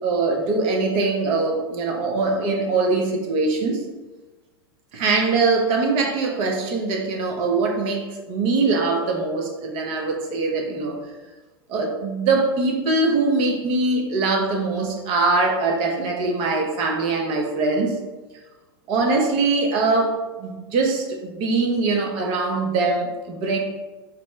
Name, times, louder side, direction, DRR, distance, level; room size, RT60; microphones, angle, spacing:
voice 1, 0.0-3.8 4.9-11.0 11.7-18.0 18.9-23.6, right 3 dB, 45° right, 2 dB, 0.7 m, -22 dB
4.4 x 2.1 x 3.0 m, 1.2 s
hypercardioid pair, 100°, 13 cm